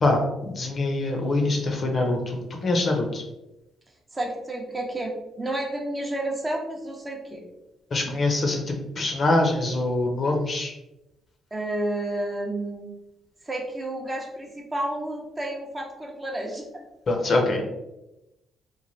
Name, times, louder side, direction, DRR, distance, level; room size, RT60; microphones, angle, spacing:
voice 1, 0.0-3.2 7.9-10.7 17.1-17.6, left 2 dB, 45° left, 2 dB, 0.6 m, -24 dB
voice 2, 4.1-7.4 11.5-12.9 13.4-16.7, right 1 dB, 20° right, 0 dB, 0.6 m, -31 dB
3.1 x 2.1 x 2.6 m, 0.93 s
cardioid pair, 90°, 0 cm